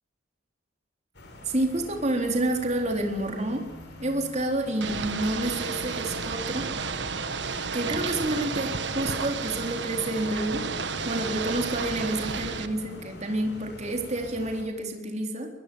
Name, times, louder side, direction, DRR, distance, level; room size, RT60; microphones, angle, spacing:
sound 1, 1.1-14.6, left 1 dB, 60° left, 5.5 m, -46 dB
voice 1, 1.5-3.6 4.0-6.7 7.7-10.7 11.0-15.5, right 1 dB, 35° right, 4 dB, 4.1 m, -29 dB
Ocean / Boat Water vehicle, 4.8-12.7, right 4 dB, 65° right, 1.5 m, -32 dB
22.5 x 21.5 x 7.2 m, 1.2 s
head